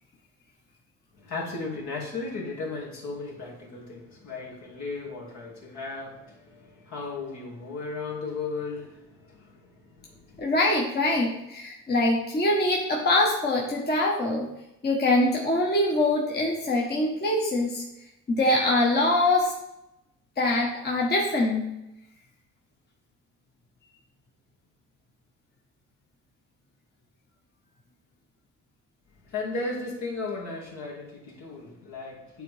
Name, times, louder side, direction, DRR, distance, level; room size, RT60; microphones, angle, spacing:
voice 1, 1.2-10.4 29.2-32.4, left 3 dB, 65° left, -4 dB, 2.2 m, -36 dB
voice 2, 10.4-14.5 14.8-17.8 18.3-19.5 20.4-21.6, left 2 dB, 35° left, -2 dB, 1.1 m, -24 dB
8.8 x 3.6 x 3.4 m, 0.88 s
cardioid pair, 90°, 30 cm